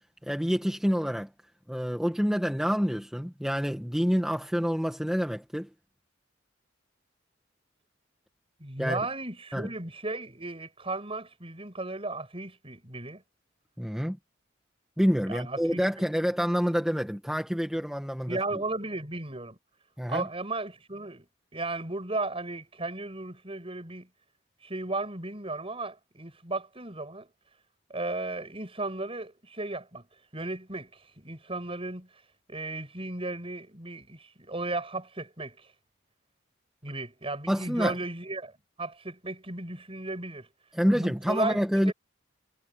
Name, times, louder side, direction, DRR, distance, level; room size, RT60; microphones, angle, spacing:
voice 1, 0.2-1.3 1.7-5.7 8.8-9.0 9.5-9.7 13.8-14.2 15.0-18.4 20.0-20.3 37.5-37.9 40.7-41.9, equal, 5° right, 1.5 m, -27 dB
voice 2, 8.6-13.2 15.3-16.0 18.3-19.6 20.1-21.3 21.5-24.1 24.6-27.3 27.9-30.1 30.3-32.1 32.5-35.7 36.8-38.5 38.8-40.5 40.9-41.9, right 2 dB, 30° right, 7.6 m, -35 dB
head